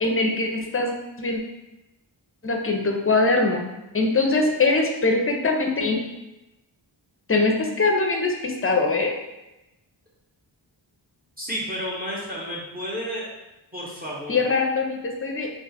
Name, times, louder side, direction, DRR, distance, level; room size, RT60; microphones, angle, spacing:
voice 1, 0.0-0.9 1.2-1.4 2.4-3.7 3.9-6.0 7.3-9.1 14.3-15.5, left 3 dB, 30° left, 2 dB, 0.5 m, -22 dB
voice 2, 11.4-13.3 13.7-14.4, equal, 20° right, -5 dB, 0.8 m, -31 dB
2.4 x 2.4 x 4.0 m, 0.97 s
wide cardioid pair, 55°, 48 cm